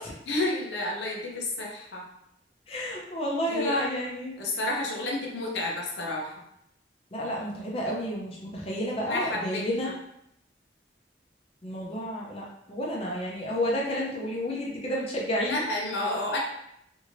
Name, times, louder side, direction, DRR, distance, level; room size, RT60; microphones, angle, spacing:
voice 1, 0.3-2.0 3.5-3.8 4.4-6.3 9.1-9.9 15.5-16.4, left 2 dB, 85° left, -2 dB, 0.7 m, -30 dB
voice 2, 2.7-4.4 7.1-9.9 11.6-15.6, equal, 35° left, -3 dB, 0.5 m, -31 dB
3.0 x 2.6 x 2.6 m, 0.77 s
head